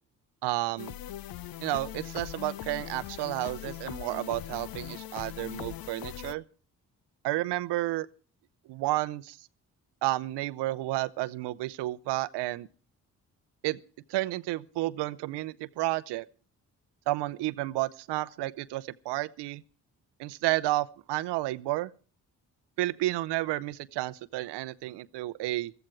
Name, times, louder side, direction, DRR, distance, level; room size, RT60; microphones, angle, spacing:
voice 1, 0.4-0.9 1.6-6.4 7.2-8.1 8.7-9.4 10.0-12.7 13.6-13.8 14.1-16.3 17.1-19.6 20.2-21.9 22.8-25.7, right 17 dB, 75° right, 0.7 m, -31 dB
sound 1, 0.8-6.3, left 13 dB, 55° left, 0.7 m, -40 dB
15.0 x 14.0 x 4.6 m
hypercardioid pair, 45°, 42 cm